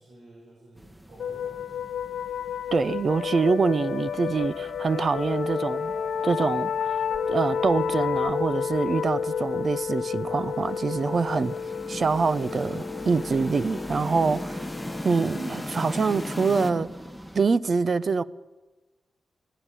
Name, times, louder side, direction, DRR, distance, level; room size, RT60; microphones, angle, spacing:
voice 1, 0.0-2.1, right 1 dB, 85° right, 5.5 m, -52 dB
sound 1, 0.7-17.5, equal, 10° right, 1.5 m, -45 dB
sound 2, 1.2-16.5, left 7 dB, 85° left, 1.3 m, -31 dB
voice 2, 2.7-5.9 6.2-7.0 7.3-11.6 11.9-14.6 15.0-16.9 17.3-18.2, right 4 dB, 55° right, 0.8 m, -25 dB
sound 3, 10.3-16.7, left 1 dB, 15° left, 1.0 m, -37 dB
23.5 x 16.0 x 7.3 m
cardioid pair, 50°, 0 cm